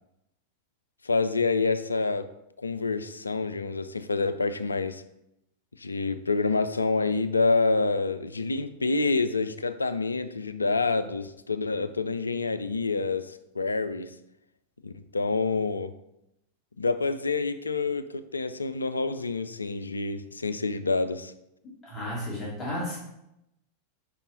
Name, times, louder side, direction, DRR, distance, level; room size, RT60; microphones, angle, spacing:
voice 1, 1.0-5.0 5.8-14.1 14.8-15.9 16.8-21.3, left 3 dB, 80° left, 12 dB, 0.3 m, -27 dB
voice 2, 21.8-23.0, left 1 dB, 15° left, -6 dB, 2.2 m, -33 dB
5.3 x 5.0 x 4.0 m, 0.84 s
figure-of-eight pair, 90°, 0 cm